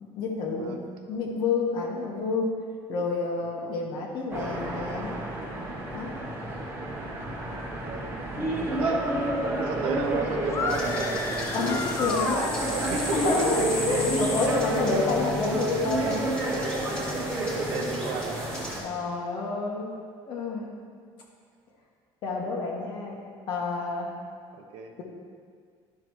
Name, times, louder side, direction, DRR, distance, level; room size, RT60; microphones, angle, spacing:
voice 1, 0.2-0.8 1.1-2.5 2.9-5.1 5.9-6.1 8.4-8.6 11.5-12.4 13.1-16.2 18.8-19.9 20.3-20.7 22.2-23.2 23.5-24.1, left 3 dB, 50° left, -2 dB, 1.2 m, -29 dB
voice 2, 3.4-4.0 7.5-8.2 8.7-9.2 9.6-13.6 15.7-15.8 16.1-16.2 17.5-18.5 24.7-24.9, right 5 dB, 65° right, 4 dB, 0.9 m, -34 dB
sound 1, 4.3-18.8, right 1 dB, 20° right, 1.1 m, -30 dB
sound 2, 10.4-13.0, left 5 dB, 25° left, 0.4 m, -32 dB
sound 3, 10.7-18.8, left 1 dB, 10° left, 1.5 m, -37 dB
12.0 x 5.9 x 3.1 m, 2.1 s
cardioid pair, 170°, 11 cm